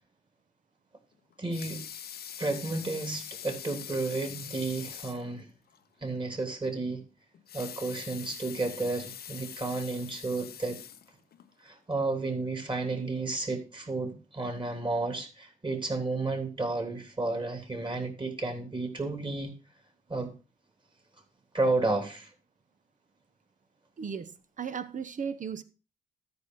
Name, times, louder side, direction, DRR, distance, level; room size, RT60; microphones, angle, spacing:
Water tap faucet / Sink (filling or washing) / Liquid, 1.3-5.3 5.7-5.8 6.2-6.3 7.3-11.5 12.1-12.2, left 9 dB, 50° left, 0.9 m, -43 dB
voice 1, 1.4-1.8 2.4-5.5 6.0-7.0 7.5-10.8 11.6-19.5 20.1-20.3 21.5-22.3, right 3 dB, 25° right, 3.2 m, -32 dB
voice 2, 24.0-25.6, right 6 dB, 40° right, 1.0 m, -36 dB
13.0 x 5.3 x 4.7 m
hypercardioid pair, 45°, 20 cm